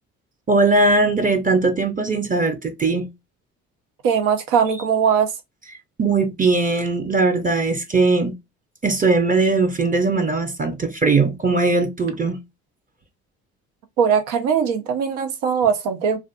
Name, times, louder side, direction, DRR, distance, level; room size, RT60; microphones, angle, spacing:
voice 1, 0.5-3.1 6.0-8.3 8.8-12.4, right 3 dB, 25° right, 0.6 m, -19 dB
voice 2, 4.0-5.3 14.0-16.2, right 7 dB, 75° right, 0.7 m, -20 dB
2.4 x 2.4 x 2.3 m
hypercardioid pair, 60°, 35 cm